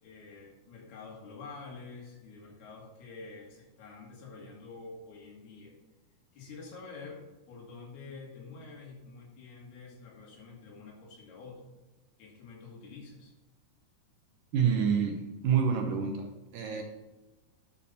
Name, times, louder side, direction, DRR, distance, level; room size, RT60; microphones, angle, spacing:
voice 1, 0.0-5.8 6.3-11.7 12.2-13.3, left 4 dB, 75° left, -2 dB, 4.2 m, -47 dB
voice 2, 14.5-16.8, right 7 dB, 70° right, 3 dB, 2.3 m, -28 dB
10.0 x 5.6 x 5.8 m, 1.1 s
omnidirectional pair, 4.5 m